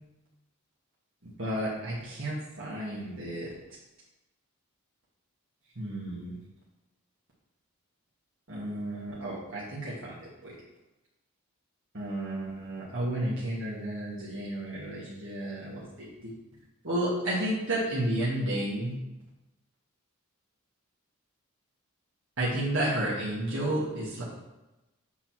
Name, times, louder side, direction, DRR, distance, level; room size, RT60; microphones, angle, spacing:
voice 1, 1.4-3.5 5.8-6.3 8.5-10.1 11.9-16.1 16.8-18.9 22.4-24.2, right 1 dB, 60° right, -7 dB, 1.5 m, -32 dB
7.8 x 3.0 x 6.0 m, 1.0 s
head